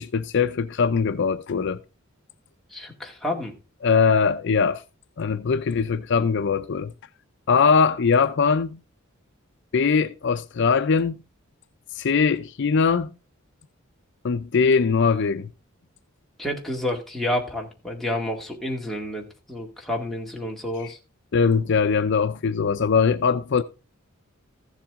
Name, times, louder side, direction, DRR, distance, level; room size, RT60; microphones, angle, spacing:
voice 1, 0.0-1.8 3.8-4.8 5.2-6.9 7.5-8.8 9.7-11.1 11.9-13.1 14.2-15.5 21.3-23.6, left 5 dB, 60° left, 0.5 m, -21 dB
voice 2, 2.7-3.5 16.4-21.0, left 1 dB, ahead, 2.0 m, -29 dB
14.5 x 7.4 x 3.6 m
head